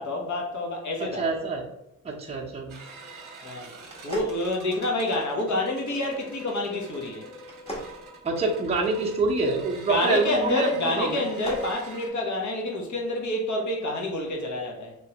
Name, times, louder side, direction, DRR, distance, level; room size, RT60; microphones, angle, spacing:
voice 1, 0.0-1.3 3.4-3.7 4.0-7.2 9.9-14.9, left 1 dB, 55° left, 0 dB, 1.1 m, -28 dB
voice 2, 1.0-1.6 2.0-2.7 8.2-10.7 11.0-11.2, right 3 dB, 20° right, -3 dB, 0.7 m, -26 dB
sound 1, 2.7-12.1, right 2 dB, 60° right, 0.9 m, -45 dB
sound 2, 3.8-5.2 7.4-9.0 11.1-11.7, equal, 15° left, 1.0 m, -39 dB
3.3 x 3.1 x 2.9 m, 0.85 s
cardioid pair, 85°, 35 cm